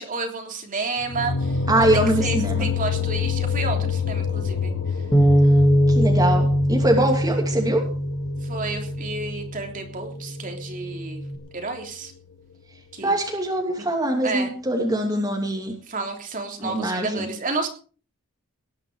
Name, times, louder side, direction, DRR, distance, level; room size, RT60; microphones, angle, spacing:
voice 1, 0.0-5.0 5.4-5.6 8.4-11.2 11.5-12.1 12.9-13.1 13.8-13.9 14.2-14.5 15.9-17.7, right 3 dB, 40° right, 3 dB, 3.2 m, -31 dB
sound 1, 1.0-10.0, left 6 dB, 80° left, 1.5 m, -27 dB
voice 2, 1.7-2.7 5.9-7.9 13.0-15.7 16.6-17.3, right 1 dB, 15° right, 1 dB, 2.8 m, -23 dB
Bass guitar, 5.1-9.5 10.2-11.4, equal, 15° left, 2.6 m, -21 dB
19.0 x 10.5 x 5.0 m, 0.40 s
head